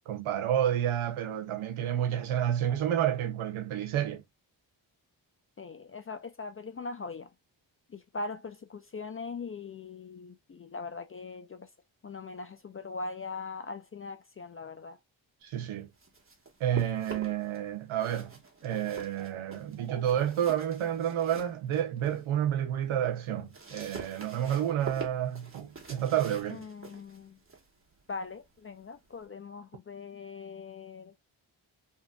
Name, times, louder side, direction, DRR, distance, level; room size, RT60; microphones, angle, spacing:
voice 1, 0.1-4.2 15.4-15.9 16.6-18.3 18.6-26.6, right 10 dB, 90° right, 0.7 m, -30 dB
voice 2, 5.6-7.3 7.9-11.7 12.0-15.0 26.5-27.4 28.1-31.2, left 4 dB, 30° left, 0.4 m, -41 dB
sound 1, 15.7-17.6 17.9-22.3 22.7-29.3, right 4 dB, 25° right, 1.1 m, -46 dB
2.8 x 2.5 x 2.2 m
cardioid pair, 55°, 47 cm